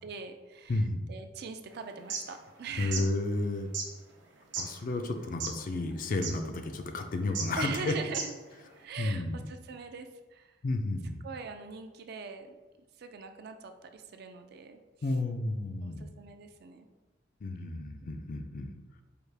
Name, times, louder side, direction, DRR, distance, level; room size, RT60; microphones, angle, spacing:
voice 1, 0.0-3.1 7.5-10.6 11.2-12.6 13.0-14.8 15.8-16.9 17.6-18.1, right 5 dB, 60° right, 7 dB, 0.4 m, -42 dB
voice 2, 0.7-1.0 2.8-3.7 4.6-7.9 9.0-9.5 10.6-11.3 15.0-16.1 17.4-18.7, left 2 dB, 50° left, 6 dB, 0.4 m, -32 dB
sound 1, 1.9-2.2 2.7-3.0 3.7-3.9 4.5-4.7 5.3-5.6 5.9-6.0 6.2-6.3 7.3-7.5 8.0-8.4, right 5 dB, 85° right, 0.7 m, -34 dB
4.7 x 2.3 x 3.3 m, 1.2 s
head